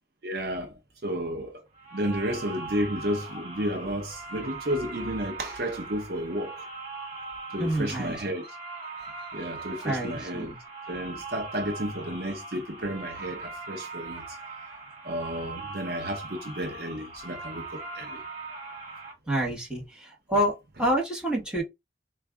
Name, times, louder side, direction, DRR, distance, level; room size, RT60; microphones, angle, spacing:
voice 1, 0.2-0.7 1.0-1.7 1.9-6.7 7.5-8.6 9.3-10.5 10.9-14.4 15.0-18.2, equal, 55° right, 0.7 m, -32 dB
sound 1, 1.8-19.1, right 3 dB, 35° right, 2.0 m, -40 dB
voice 2, 7.6-8.2 9.8-10.6 19.3-21.6, right 1 dB, 5° right, 1.4 m, -28 dB
4.5 x 2.4 x 3.5 m
head